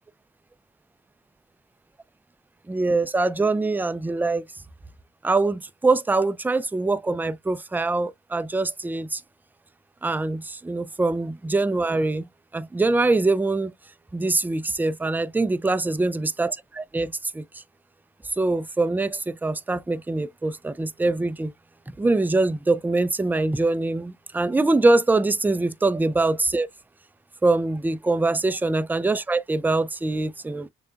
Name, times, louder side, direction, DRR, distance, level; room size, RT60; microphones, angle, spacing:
voice 1, 2.7-4.4 5.2-9.2 10.0-12.2 12.5-13.7 14.1-17.4 18.4-21.5 22.0-26.7 27.4-30.7, right 2 dB, 5° right, 0.4 m, -23 dB
6.5 x 2.2 x 2.4 m
hypercardioid pair, 40°, 35 cm